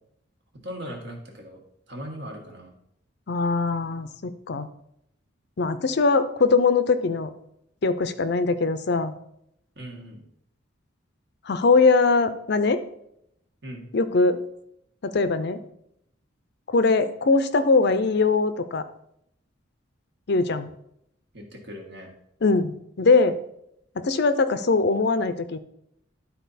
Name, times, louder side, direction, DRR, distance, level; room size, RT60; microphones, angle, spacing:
voice 1, 0.6-1.6 1.9-2.7 9.7-10.2 13.6-13.9 21.3-22.1, equal, 60° right, 2 dB, 1.7 m, -38 dB
voice 2, 3.3-4.7 5.6-7.3 7.8-9.1 11.5-12.8 13.9-14.4 15.0-15.6 16.7-18.8 20.3-20.7 22.4-23.4 24.0-25.6, left 3 dB, 55° left, 11 dB, 0.5 m, -21 dB
11.5 x 4.3 x 4.1 m, 0.74 s
head